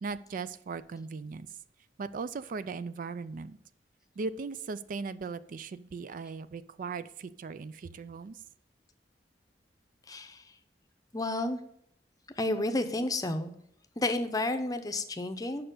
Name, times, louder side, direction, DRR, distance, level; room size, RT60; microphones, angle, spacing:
voice 1, 0.0-1.5 2.0-3.6 4.2-8.4, right 4 dB, 50° right, 15 dB, 0.4 m, -38 dB
voice 2, 10.1-10.4 11.1-11.6 12.4-13.5 14.0-15.7, left 2 dB, 20° left, 8 dB, 0.7 m, -31 dB
6.7 x 5.6 x 6.6 m, 0.73 s
head